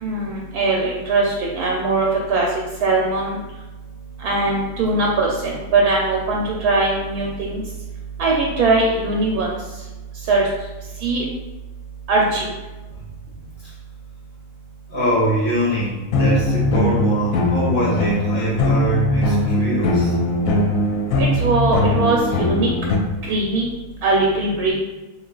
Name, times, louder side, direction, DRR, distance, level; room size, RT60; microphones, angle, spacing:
voice 1, 0.0-2.5 2.8-3.4 4.2-7.6 8.2-9.5 10.3-10.4 11.0-11.2 12.1-12.4 21.2-22.7 23.3-23.7 24.0-24.7, right 3 dB, 75° right, -2 dB, 1.0 m, -20 dB
voice 2, 14.9-20.2, equal, 15° left, -7 dB, 0.5 m, -23 dB
sound 1, 16.1-23.0, left 1 dB, 70° left, 0.9 m, -20 dB
3.4 x 2.3 x 3.7 m, 1.1 s
omnidirectional pair, 1.7 m